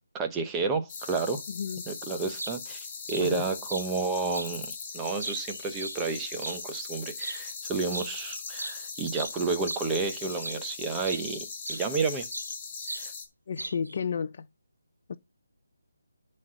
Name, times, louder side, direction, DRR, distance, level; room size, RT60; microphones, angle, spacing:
voice 1, 0.1-1.4 1.9-12.3 12.9-13.1, right 4 dB, 10° right, 1.0 m, -31 dB
sound 1, 0.9-13.2, left 5 dB, 20° left, 4.1 m, -40 dB
voice 2, 1.5-1.9 3.2-3.5 13.5-14.4 15.1-15.2, left 6 dB, 45° left, 0.5 m, -32 dB
sound 2, 2.4-2.6 3.1-3.3 3.7-3.9 4.3-4.5 5.0-6.6 7.1-7.4 7.9-8.1 8.4-10.7 11.0-11.3 11.6-12.5 12.9-13.1 13.6-14.0, right 2 dB, 90° right, 0.6 m, -38 dB
11.5 x 4.3 x 6.4 m
figure-of-eight pair, 160°, 0 cm